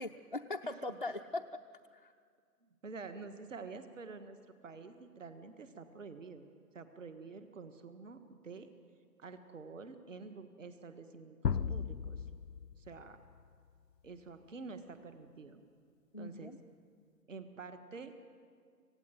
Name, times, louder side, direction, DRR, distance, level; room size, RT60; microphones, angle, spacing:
voice 1, 0.0-1.5 1.9-2.1 16.1-16.6, left 2 dB, 35° left, 2 dB, 0.5 m, -40 dB
voice 2, 0.6-1.0 2.6-4.4 4.6-6.4 6.7-8.7 9.2-12.3 12.8-13.2 14.0-15.6 16.2-16.6 17.3-18.1, right 4 dB, 50° right, 9 dB, 1.7 m, -48 dB
sound 1, 11.4-13.4, left 6 dB, 85° left, 0.7 m, -36 dB
27.0 x 16.5 x 9.1 m, 2.1 s
figure-of-eight pair, 145°, 48 cm